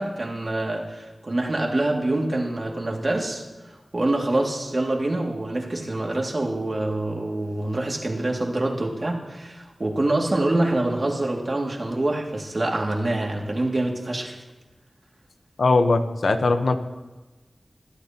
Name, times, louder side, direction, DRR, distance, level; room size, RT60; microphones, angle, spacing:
voice 1, 0.0-14.4, right 2 dB, 45° right, 0 dB, 2.4 m, -26 dB
voice 2, 15.6-16.7, left 3 dB, 85° left, 7 dB, 1.0 m, -20 dB
21.5 x 13.5 x 2.9 m, 1.2 s
wide cardioid pair, 65°, 0 cm